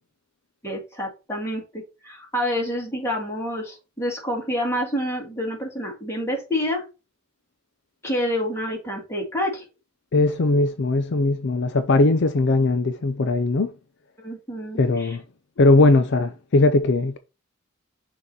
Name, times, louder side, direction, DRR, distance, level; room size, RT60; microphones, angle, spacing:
voice 1, 0.6-6.8 8.0-9.6 14.2-15.2, equal, 15° left, 1.9 m, -28 dB
voice 2, 10.1-13.7 14.7-15.2 15.6-17.2, left 2 dB, 55° left, 0.5 m, -19 dB
6.3 x 3.0 x 5.3 m
head